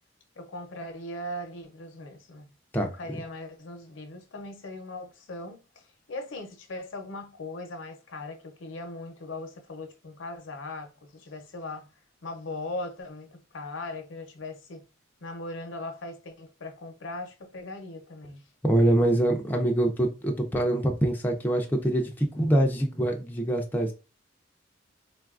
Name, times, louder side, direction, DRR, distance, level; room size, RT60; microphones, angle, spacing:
voice 1, 0.4-2.5 2.8-11.9 12.2-14.8 15.2-18.4, left 2 dB, 70° left, 0.7 m, -39 dB
voice 2, 18.6-23.9, right 1 dB, 10° left, 0.4 m, -24 dB
3.9 x 2.3 x 2.4 m
head